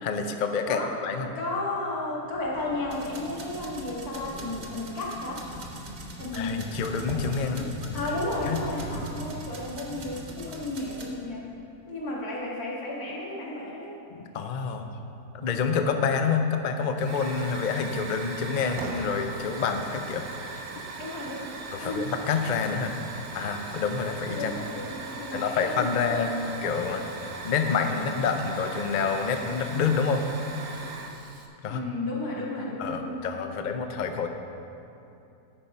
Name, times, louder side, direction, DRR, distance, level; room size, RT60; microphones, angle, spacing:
voice 1, 0.0-1.3 6.3-8.0 8.5-8.6 14.1-14.9 15.3-20.2 21.7-22.9 23.3-24.5 25.3-27.0 27.4-30.2 31.6-31.8 32.8-34.3, left 5 dB, 50° left, 6 dB, 0.5 m, -28 dB
voice 2, 1.4-5.4 6.1-6.6 7.5-11.4 11.9-13.9 21.0-21.5 21.8-22.1 24.4-25.8 31.7-33.2, left 2 dB, 90° left, -4 dB, 2.4 m, -33 dB
sound 1, 2.2-11.4, equal, ahead, 1.9 m, -41 dB
sound 2, 2.9-11.1, right 4 dB, 65° right, 1.4 m, -46 dB
Hiss / Fire, 17.0-31.5, right 3 dB, 80° right, 1.4 m, -39 dB
8.9 x 8.7 x 5.5 m, 2.8 s
omnidirectional pair, 1.6 m